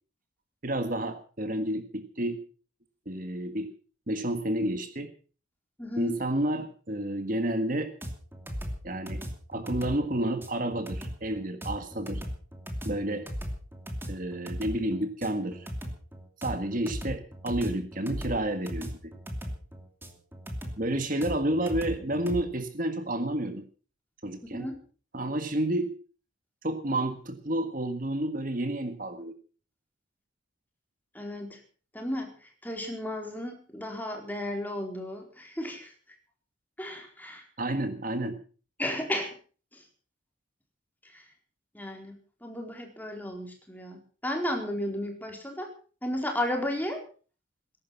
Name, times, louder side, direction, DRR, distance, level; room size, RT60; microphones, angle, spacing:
voice 1, 0.6-2.4 3.0-3.7 4.1-5.1 6.0-7.9 8.8-9.2 9.5-12.2 12.8-13.3 14.1-15.7 16.4-19.1 20.8-23.6 24.2-24.7 25.1-25.9 26.6-29.3 37.6-38.4, right 1 dB, 45° right, 8 dB, 1.7 m, -30 dB
voice 2, 5.8-6.1 24.4-24.8 31.1-31.6 31.9-35.9 36.8-37.4 38.8-39.3 39.7-39.8 41.0-41.3 41.7-45.7 46.0-47.0, left 1 dB, 10° left, 2 dB, 4.3 m, -34 dB
sound 1, 8.0-22.4, equal, 10° right, 2.7 m, -37 dB
20.5 x 11.5 x 5.9 m, 0.40 s
head